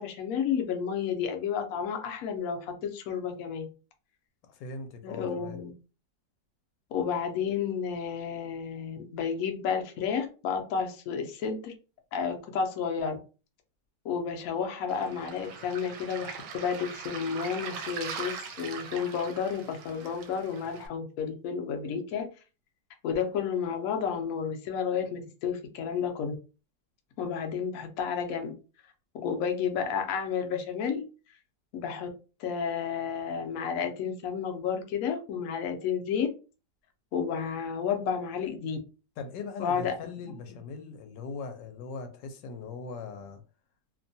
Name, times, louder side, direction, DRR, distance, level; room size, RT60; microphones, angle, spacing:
voice 1, 0.0-3.7 5.0-5.7 6.9-11.7 12.1-13.1 14.0-22.3 23.0-26.3 27.2-28.5 29.1-31.0 31.7-32.1 32.4-36.3 37.1-38.8 39.6-40.3, left 7 dB, 65° left, 0.9 m, -31 dB
voice 2, 4.4-5.6 39.2-43.4, left 4 dB, 85° left, 1.2 m, -40 dB
Waves surf, 14.9-20.9, right 6 dB, 75° right, 1.1 m, -41 dB
3.0 x 2.2 x 2.6 m
omnidirectional pair, 1.9 m